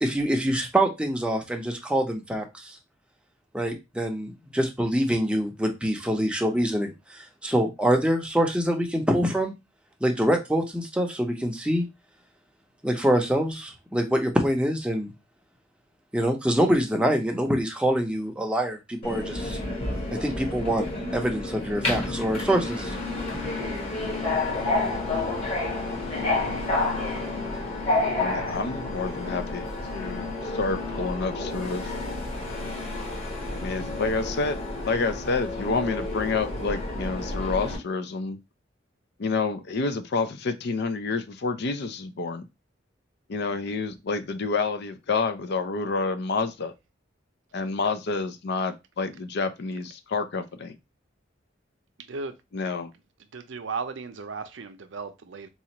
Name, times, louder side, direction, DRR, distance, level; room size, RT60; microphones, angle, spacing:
voice 1, 0.0-2.8 3.5-9.5 10.0-11.9 12.8-15.1 16.1-19.6 20.2-20.9 21.1-23.0, equal, 5° right, 0.6 m, -25 dB
Subway metro underground, 19.0-37.8, left 2 dB, 30° left, 1.2 m, -30 dB
voice 2, 28.2-31.9 33.6-38.4 39.2-42.4 43.3-46.7 47.5-50.7 52.5-52.9, left 4 dB, 60° left, 0.5 m, -29 dB
voice 3, 53.3-55.5, right 4 dB, 70° right, 0.5 m, -35 dB
4.2 x 2.4 x 2.9 m
head